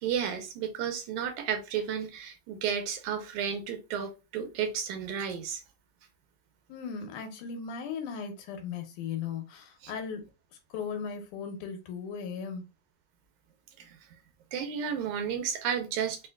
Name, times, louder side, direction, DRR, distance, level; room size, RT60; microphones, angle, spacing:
voice 1, 0.0-5.6 9.8-9.9 13.8-14.0 14.5-16.2, right 8 dB, 90° right, 2.2 m, -32 dB
voice 2, 6.7-10.2 10.7-12.6, left 6 dB, 90° left, 2.4 m, -37 dB
5.5 x 2.5 x 2.3 m
omnidirectional pair, 3.4 m